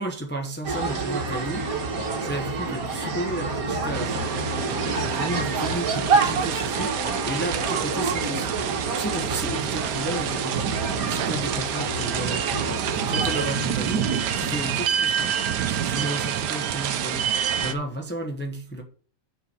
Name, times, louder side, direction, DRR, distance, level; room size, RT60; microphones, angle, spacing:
voice 1, 0.0-1.7 2.2-4.3 5.1-7.0 7.2-17.3 17.6-18.8, right 1 dB, 5° left, 1.0 m, -33 dB
funfair France people passing by, 0.6-13.5, right 3 dB, 55° right, 1.8 m, -28 dB
sound 1, 3.9-17.7, right 9 dB, 75° right, 1.3 m, -28 dB
sound 2, 9.5-14.7, left 9 dB, 70° left, 1.9 m, -41 dB
6.8 x 6.1 x 6.3 m
omnidirectional pair, 1.8 m